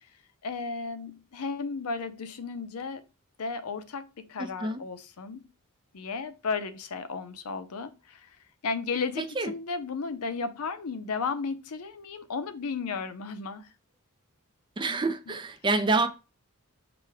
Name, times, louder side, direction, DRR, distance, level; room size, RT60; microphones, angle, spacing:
voice 1, 0.4-3.0 3.4-5.4 5.9-8.4 8.6-13.7 15.3-15.4, left 4 dB, 80° left, 0.6 m, -34 dB
voice 2, 4.4-4.8 9.2-9.5 14.8-16.1, right 3 dB, 20° right, 0.5 m, -27 dB
4.9 x 2.2 x 4.7 m
head